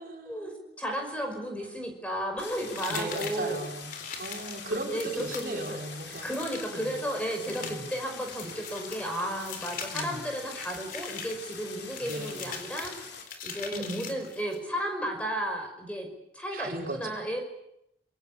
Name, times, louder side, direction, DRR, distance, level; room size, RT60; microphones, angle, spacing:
voice 1, 0.0-0.6 1.5-1.7 2.9-3.9 4.2-6.3 6.7-7.1 7.6-7.9 9.9-10.2 12.0-12.5 13.7-14.1 16.5-17.2, right 1 dB, 50° right, 1 dB, 5.0 m, -37 dB
voice 2, 0.8-3.6 4.9-5.8 6.1-16.1 16.3-17.4, equal, 5° left, 3 dB, 5.6 m, -34 dB
Stream, 2.4-13.2, left 5 dB, 90° left, 4.9 m, -44 dB
sound 1, 2.7-14.6, left 6 dB, 50° left, 4.0 m, -41 dB
27.0 x 23.0 x 8.7 m, 0.81 s
head